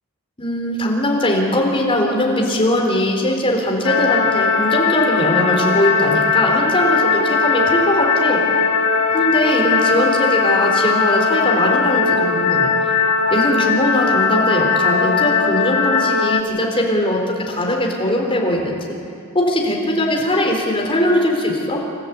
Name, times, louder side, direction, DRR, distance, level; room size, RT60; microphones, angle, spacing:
voice 1, 0.4-8.4 9.1-12.9 13.3-19.0 19.3-21.8, left 1 dB, 25° left, 0 dB, 3.9 m, -20 dB
sound 1, 3.8-16.4, left 4 dB, 70° left, 1.3 m, -18 dB
28.5 x 13.5 x 8.5 m, 2.4 s
head